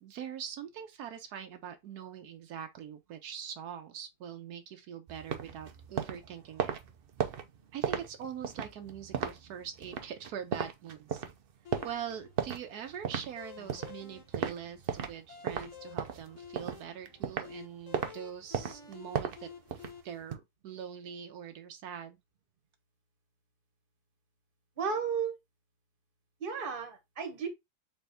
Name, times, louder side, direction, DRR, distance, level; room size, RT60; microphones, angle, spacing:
voice 1, 0.0-6.7 7.7-11.2 11.8-19.5 20.0-22.2, right 8 dB, 80° right, 1.2 m, -43 dB
sound 1, 5.1-15.2 15.5-17.6 17.9-18.1 18.5-20.4, right 8 dB, 60° right, 0.6 m, -36 dB
sound 2, 11.6-20.0, left 7 dB, 55° left, 1.5 m, -51 dB
voice 2, 24.8-25.4 26.4-27.5, right 6 dB, 40° right, 1.2 m, -33 dB
4.2 x 3.4 x 3.4 m
omnidirectional pair, 1.6 m